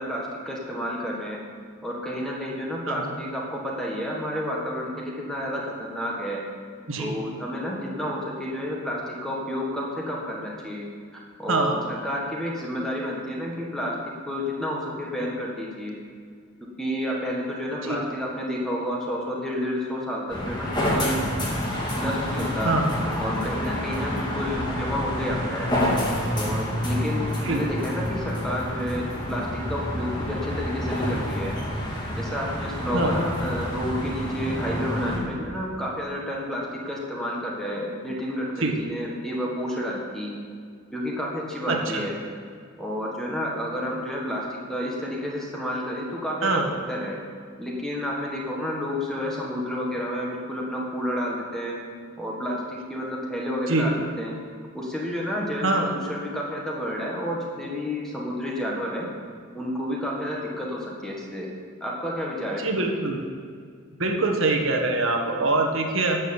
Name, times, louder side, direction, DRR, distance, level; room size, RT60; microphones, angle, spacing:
voice 1, 0.0-1.4 1.8-6.4 7.0-10.9 11.1-13.9 14.3-15.9 16.8-21.2 22.0-22.7 23.2-25.7 26.3-31.5 32.2-40.3 40.9-42.1 42.8-47.2 47.6-51.8 52.2-54.4 54.7-59.1 59.5-61.5 61.8-62.9, equal, ahead, -3 dB, 1.7 m, -30 dB
sound 1, 20.3-35.2, left 1 dB, 20° left, 2.1 m, -28 dB
voice 2, 41.7-42.0 46.4-46.7 53.7-53.9 55.6-55.9 62.6-63.2 64.0-66.2, right 2 dB, 65° right, 2 dB, 1.6 m, -24 dB
12.5 x 7.5 x 7.2 m, 2.1 s
head